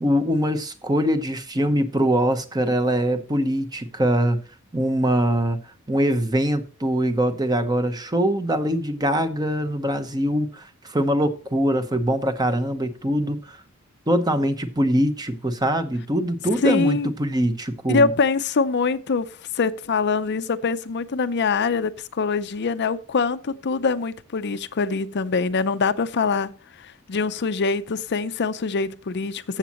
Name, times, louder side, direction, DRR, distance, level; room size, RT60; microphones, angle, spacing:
voice 1, 0.0-4.4 4.7-5.6 5.9-13.6 14.1-18.1, equal, 20° right, 0.9 m, -23 dB
voice 2, 16.6-17.1 17.9-19.3 19.5-29.6, left 4 dB, 55° left, 0.6 m, -24 dB
14.5 x 7.3 x 3.0 m
head